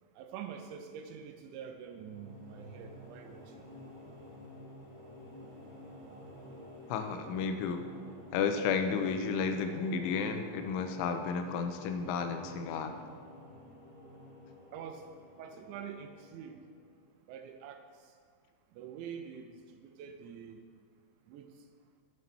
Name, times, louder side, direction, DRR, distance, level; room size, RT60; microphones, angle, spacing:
voice 1, 0.2-3.4 14.7-15.0 15.4-16.6 17.3-17.8 18.7-19.5 19.8-20.6 21.3-21.5, right 7 dB, 80° right, 6 dB, 2.8 m, -45 dB
sound 1, 1.7-17.0, left 1 dB, 20° right, 1.2 m, -51 dB
voice 2, 6.9-7.9 8.3-12.9, left 5 dB, 85° left, 7 dB, 3.2 m, -32 dB
11.5 x 8.2 x 4.4 m, 2.2 s
omnidirectional pair, 5.5 m